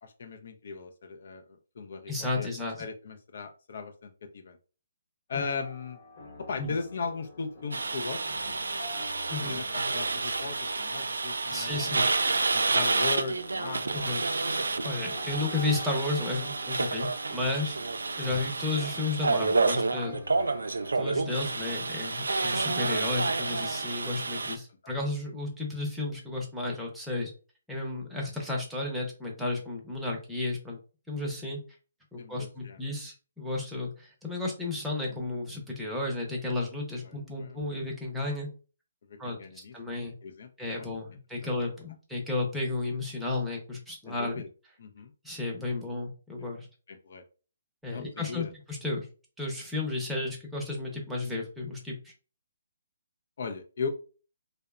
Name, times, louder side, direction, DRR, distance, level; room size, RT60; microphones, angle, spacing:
voice 1, 0.0-2.5 2.8-4.6 5.3-6.0 6.4-12.1 12.5-14.1 21.6-21.8 24.8-24.9 32.2-32.8 35.1-35.2 37.0-37.8 39.1-40.5 40.8-41.5 44.1-44.5 44.8-45.1 46.9-47.2 47.9-48.5 53.4-53.9, left 5 dB, 60° left, 6 dB, 0.4 m, -38 dB
voice 2, 2.1-2.8 5.3-5.4 6.6-6.7 9.3-9.6 11.5-12.1 13.9-14.2 14.8-17.8 18.1-20.2 20.9-27.3 27.7-30.8 31.1-31.6 32.1-38.5 39.2-40.1 40.6-44.4 45.2-46.7 47.8-49.1 49.4-52.0, left 2 dB, 5° right, -3 dB, 0.7 m, -33 dB
sound 1, 5.3-24.2, left 2 dB, 40° left, 1.0 m, -48 dB
sound 2, 7.7-24.6, right 3 dB, 85° right, 0.3 m, -29 dB
2.8 x 2.0 x 2.3 m, 0.36 s
hypercardioid pair, 145°, 0 cm